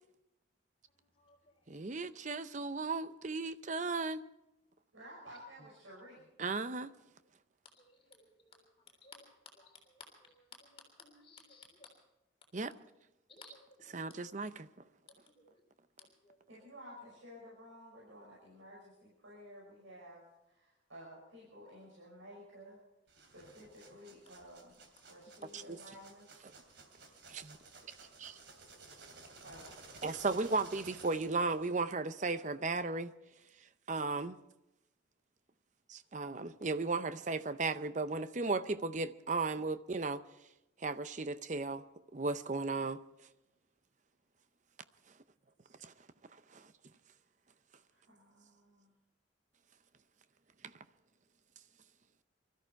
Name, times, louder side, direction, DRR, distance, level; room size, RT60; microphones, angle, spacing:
voice 1, 1.7-4.2 6.4-6.9 12.5-12.7 13.9-14.7 25.7-25.8 27.3-27.6 28.2-28.4 30.0-33.1 33.9-34.4 35.9-40.2 40.8-41.8 42.1-43.0 45.8-45.9 46.5-46.7 50.6-50.7, right 3 dB, 40° right, 0.6 m, -35 dB
voice 2, 4.9-6.3 16.5-22.8 23.2-24.8 25.1-26.3 29.4-30.1 47.9-48.9, equal, 90° right, 5.7 m, -54 dB
voice 3, 9.6-10.3 10.6-11.9 13.3-14.0 15.4-15.5 16.2-16.3, left 4 dB, 30° left, 3.4 m, -57 dB
sound 1, 23.1-31.8, right 3 dB, 60° right, 2.9 m, -56 dB
23.0 x 13.5 x 4.6 m
head